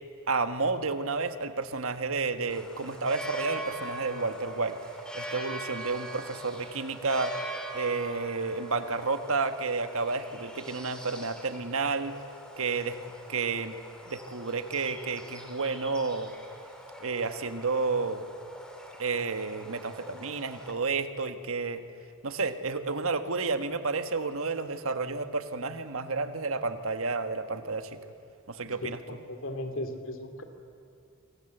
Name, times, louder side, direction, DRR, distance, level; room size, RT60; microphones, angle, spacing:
voice 1, 0.3-4.8 5.1-7.3 7.7-12.2 12.6-13.0 13.3-13.7 14.1-16.3 17.0-18.3 19.0-21.8 22.2-28.0 28.5-29.0, right 4 dB, 65° right, 8 dB, 1.5 m, -31 dB
sound 1, 2.5-20.7, right 1 dB, 5° left, 3.1 m, -42 dB
voice 2, 29.1-30.4, left 1 dB, 60° left, 6 dB, 2.6 m, -37 dB
28.0 x 24.5 x 8.0 m, 2.4 s
head